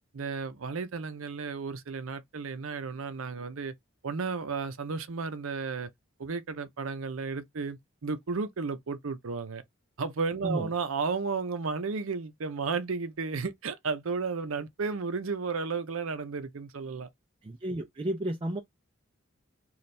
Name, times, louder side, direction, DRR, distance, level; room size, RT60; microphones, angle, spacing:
voice 1, 0.1-3.7 4.0-5.9 6.2-9.6 10.0-17.1, right 4 dB, 80° right, 0.6 m, -33 dB
voice 2, 17.4-18.6, right 1 dB, 25° right, 0.4 m, -32 dB
3.2 x 2.4 x 4.2 m
head